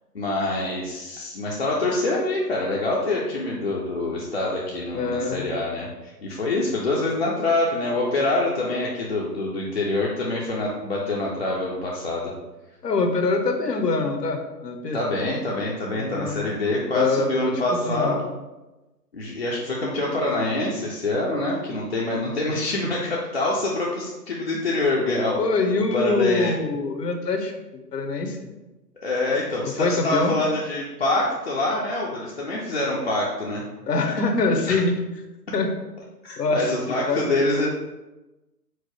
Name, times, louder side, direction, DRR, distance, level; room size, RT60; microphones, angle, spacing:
voice 1, 0.1-12.3 14.9-18.2 19.1-25.4 25.9-26.5 29.0-33.6 34.7-34.8 36.2-37.7, left 2 dB, 40° left, -5 dB, 0.5 m, -25 dB
voice 2, 4.9-5.5 12.8-15.0 15.9-16.5 16.9-18.3 25.4-27.5 27.9-28.5 29.6-30.3 33.8-34.9 35.5-35.7 36.4-36.7 37.1-37.7, left 3 dB, 70° left, 4 dB, 0.8 m, -24 dB
4.6 x 2.0 x 4.3 m, 1.1 s
figure-of-eight pair, 145°, 49 cm